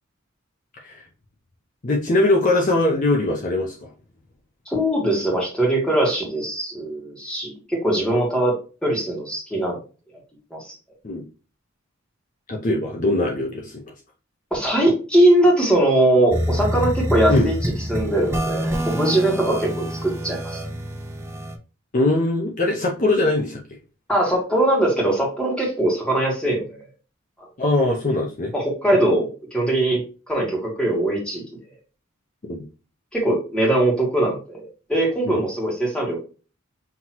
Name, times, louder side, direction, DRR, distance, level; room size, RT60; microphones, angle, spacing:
voice 1, 1.8-3.9 11.0-11.2 12.5-13.8 17.3-17.5 21.9-23.6 27.6-28.5 32.5-32.6 35.3-35.4, left 2 dB, 40° left, 0 dB, 0.7 m, -21 dB
voice 2, 4.7-8.5 8.8-9.8 10.5-10.7 14.5-20.6 24.1-26.8 27.4-27.5 28.5-30.0 30.3-31.4 33.1-36.2, right 1 dB, 5° left, -2 dB, 1.5 m, -21 dB
sound 1, 16.3-21.6, equal, 10° right, 0.7 m, -26 dB
5.9 x 2.9 x 2.9 m, 0.34 s
head